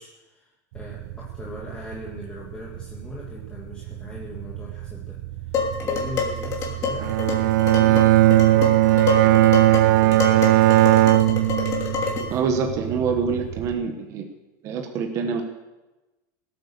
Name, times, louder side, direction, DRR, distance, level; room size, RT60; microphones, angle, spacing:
voice 1, 0.0-10.2, left 2 dB, 10° left, -4 dB, 1.9 m, -40 dB
sound 1, 0.7-13.8, right 15 dB, 60° right, 0.8 m, -36 dB
Dishes pots and pans, 5.5-12.4, left 5 dB, 30° left, 2.8 m, -28 dB
Bowed string instrument, 7.0-12.2, right 15 dB, 80° right, 0.4 m, -17 dB
voice 2, 12.3-14.3 14.6-15.4, right 5 dB, 30° right, 5 dB, 1.4 m, -25 dB
17.5 x 8.6 x 7.0 m, 1.1 s
supercardioid pair, 160°, 10 cm